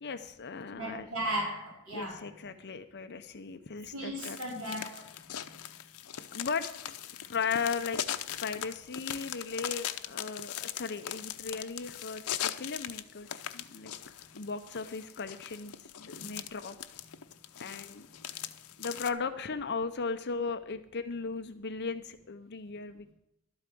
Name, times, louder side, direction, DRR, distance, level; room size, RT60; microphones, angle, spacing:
voice 1, 0.0-1.1 1.9-4.4 6.3-6.7 7.2-8.0 8.4-13.9 14.3-16.8 17.6-18.1 18.8-23.1, left 5 dB, 50° left, 9 dB, 0.7 m, -37 dB
voice 2, 0.7-2.3 3.9-5.2 16.2-16.3, right 1 dB, 70° right, -3 dB, 4.7 m, -36 dB
sound 1, 4.2-19.1, left 10 dB, 85° left, 0.8 m, -40 dB
12.5 x 8.7 x 6.1 m, 0.81 s
head